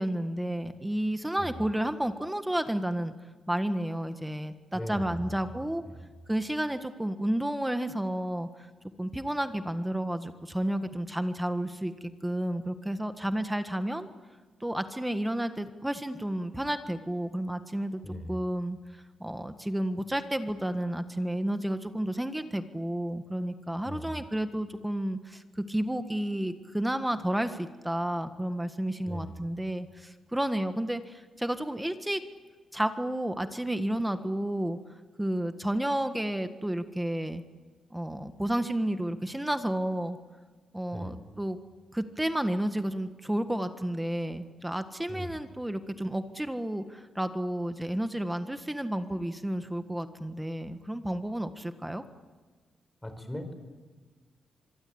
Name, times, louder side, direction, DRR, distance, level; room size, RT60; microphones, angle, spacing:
voice 1, 0.0-3.1 3.5-5.8 6.3-8.5 9.0-14.1 14.6-18.0 18.3-32.2 32.7-34.8 35.2-37.4 37.9-40.2 40.7-41.6 41.9-52.0, right 1 dB, 5° right, 9 dB, 1.6 m, -31 dB
voice 2, 4.7-5.3 5.9-6.0 18.0-18.4 23.8-24.2 29.0-29.3 40.9-41.1 45.1-45.3 53.0-53.5, left 1 dB, 10° left, 8 dB, 4.7 m, -38 dB
25.5 x 22.5 x 8.8 m, 1.4 s
cardioid pair, 105°, 0 cm